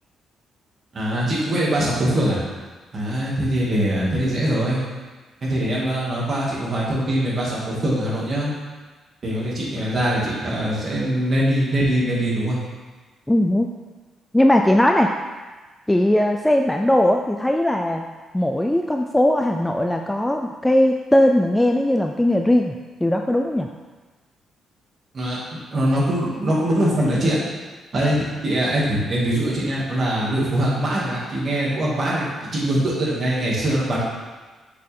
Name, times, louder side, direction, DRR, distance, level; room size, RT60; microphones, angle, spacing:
voice 1, 0.9-2.4 2.9-4.8 5.4-8.5 9.2-12.6 25.1-25.4 25.7-27.4 27.9-32.3 32.5-34.0, right 1 dB, 35° right, -6 dB, 2.3 m, -22 dB
voice 2, 13.3-13.7 14.3-15.1 15.9-18.0 18.3-22.7 23.0-23.7, left 1 dB, 5° left, 3 dB, 0.3 m, -19 dB
6.6 x 6.3 x 3.7 m, 1.3 s
cardioid pair, 130°, 0 cm